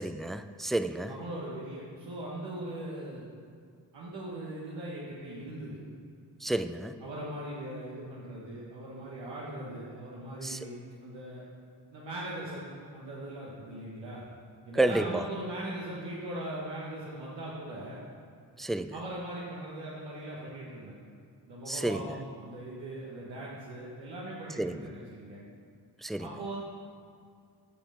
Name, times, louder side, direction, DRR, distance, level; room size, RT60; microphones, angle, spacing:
voice 1, 0.0-1.1 6.4-7.0 10.4-10.6 14.7-15.2 18.6-18.9 21.7-22.1 24.6-24.9 26.0-26.3, right 2 dB, ahead, 11 dB, 0.4 m, -30 dB
voice 2, 1.1-3.2 3.9-5.8 7.0-11.5 11.9-14.2 14.6-18.0 18.9-20.9 21.5-25.4 26.2-26.6, right 1 dB, 85° right, -6 dB, 1.5 m, -40 dB
8.5 x 5.6 x 6.9 m, 2.3 s
supercardioid pair, 45°, 42 cm